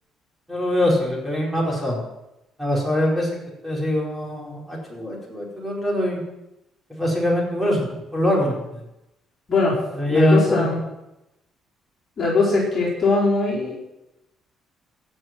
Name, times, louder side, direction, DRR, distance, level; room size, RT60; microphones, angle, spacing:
voice 1, 0.5-2.0 2.6-3.3 3.6-6.2 6.9-8.5 9.9-10.7, left 1 dB, 5° right, -4 dB, 4.6 m, -22 dB
voice 2, 10.1-10.8 12.2-13.8, left 3 dB, 35° left, -7 dB, 4.4 m, -21 dB
17.0 x 6.4 x 6.0 m, 0.93 s
cardioid pair, 130°, 0 cm